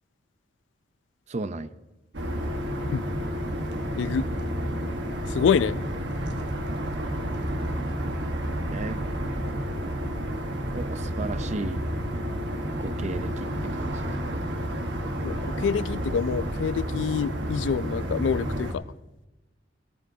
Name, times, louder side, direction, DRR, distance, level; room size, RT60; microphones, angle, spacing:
voice 1, 1.3-1.7 8.7-9.0 10.7-11.8 12.8-14.5, right 2 dB, 40° right, 12 dB, 0.6 m, -34 dB
sound 1, 2.1-18.7, equal, 65° right, 1.3 m, -30 dB
voice 2, 5.3-5.7 15.2-18.8, left 6 dB, 75° left, 18 dB, 0.3 m, -26 dB
16.0 x 14.0 x 2.7 m, 1.0 s
head